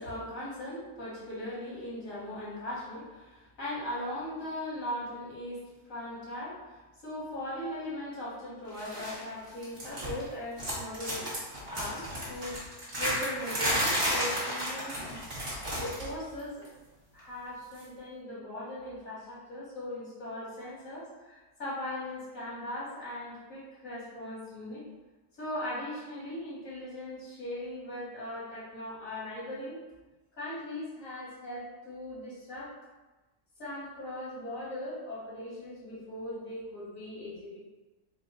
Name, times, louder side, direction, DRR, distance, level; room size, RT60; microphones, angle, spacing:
voice 1, 0.0-12.6 13.0-15.1 15.6-16.7 17.1-24.8 25.3-29.8 30.4-32.7 33.6-37.6, left 1 dB, 90° left, -8 dB, 2.0 m, -39 dB
sound 1, 8.8-9.2 9.5-10.3 10.6-16.1 16.4-16.7 17.7-17.8, equal, 40° right, 1.6 m, -32 dB
4.6 x 2.1 x 4.0 m, 1.1 s
omnidirectional pair, 1.3 m